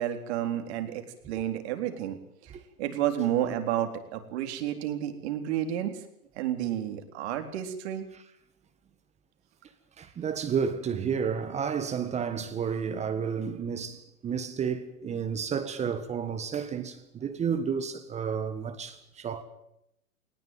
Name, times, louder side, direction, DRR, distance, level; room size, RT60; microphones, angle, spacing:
voice 1, 0.0-6.0 6.3-8.0, right 11 dB, 45° right, 4.0 m, -31 dB
voice 2, 10.0-19.4, right 7 dB, 15° right, 1.6 m, -31 dB
19.5 x 19.0 x 9.2 m
hypercardioid pair, 130°, 45 cm